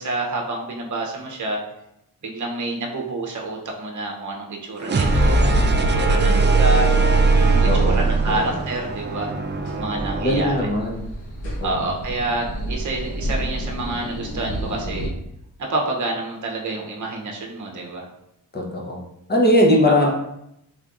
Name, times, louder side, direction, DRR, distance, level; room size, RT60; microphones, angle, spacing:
voice 1, 0.0-1.6 2.2-6.9 7.4-9.3 9.7-10.7 11.6-15.1 15.6-18.1 19.9-20.1, right 2 dB, 50° right, 0 dB, 0.8 m, -28 dB
sound 1, 4.8-10.7, right 3 dB, 30° right, 0.4 m, -19 dB
sound 2, 6.8-15.1, equal, 85° left, 1.0 m, -32 dB
voice 2, 7.6-8.5 10.2-11.0 11.6-11.7 18.5-19.0 19.3-20.1, left 1 dB, 25° left, 0 dB, 0.9 m, -20 dB
3.6 x 3.3 x 2.5 m, 0.80 s
cardioid pair, 65°, 39 cm